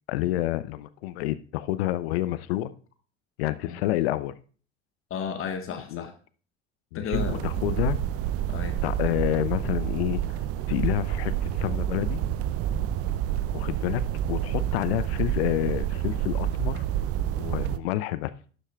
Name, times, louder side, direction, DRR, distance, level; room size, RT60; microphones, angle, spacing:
voice 1, 0.1-2.7 3.4-4.3 5.9-6.1 6.9-8.0 8.8-10.2 10.7-12.2 13.5-16.9 17.4-18.3, left 15 dB, 65° left, 0.7 m, -28 dB
voice 2, 5.1-6.1 6.9-7.5 8.5-8.8, left 7 dB, 40° left, 1.4 m, -33 dB
sound 1, 7.1-17.8, right 11 dB, 45° right, 0.7 m, -28 dB
12.0 x 11.0 x 2.4 m
figure-of-eight pair, 65°, 33 cm